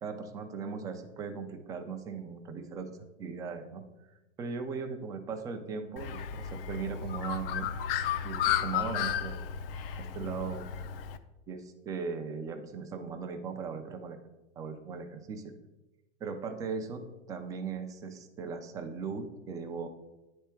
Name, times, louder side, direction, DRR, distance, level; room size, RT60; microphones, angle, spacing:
voice 1, 0.0-3.8 4.4-7.7 8.2-9.4 10.0-10.6 11.5-14.2 14.6-15.5 16.2-19.9, right 5 dB, 10° right, 5 dB, 0.3 m, -38 dB
Bird, 6.0-11.2, left 9 dB, 55° left, 0.5 m, -33 dB
9.3 x 3.5 x 4.4 m, 1.0 s
hypercardioid pair, 115°, 36 cm